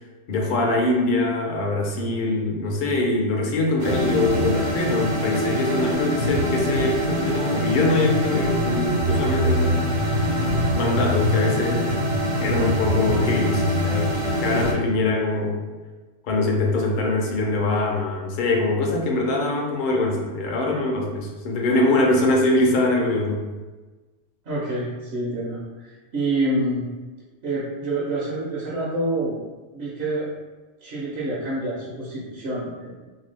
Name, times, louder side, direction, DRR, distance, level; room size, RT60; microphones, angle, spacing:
voice 1, 0.3-10.3 10.7-11.9 12.4-14.1 14.4-15.6 16.2-23.4, left 2 dB, 55° left, 0 dB, 0.6 m, -23 dB
sound 1, 3.8-14.7, equal, 80° right, 1.0 m, -23 dB
voice 2, 24.4-26.9 27.4-29.4 29.7-30.3 30.8-32.9, right 2 dB, 60° right, -6 dB, 0.8 m, -27 dB
2.8 x 2.3 x 3.2 m, 1.2 s
omnidirectional pair, 1.3 m